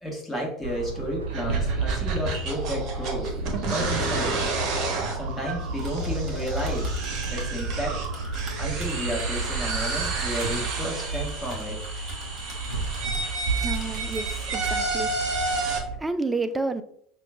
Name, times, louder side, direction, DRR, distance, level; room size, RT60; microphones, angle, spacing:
voice 1, 0.0-3.3 3.7-4.6 5.1-6.9 7.3-8.0 8.6-11.8, equal, 15° left, 1.3 m, -32 dB
sound 1, 0.6-16.0, right 3 dB, 80° right, 0.4 m, -32 dB
sound 2, 1.3-15.8, right 3 dB, 45° right, 0.8 m, -31 dB
Typing, 5.7-13.3 13.6-14.4, left 1 dB, 30° right, 1.3 m, -41 dB
voice 2, 13.6-16.8, right 3 dB, 10° right, 0.4 m, -31 dB
5.9 x 2.3 x 2.3 m
figure-of-eight pair, 70°, 0 cm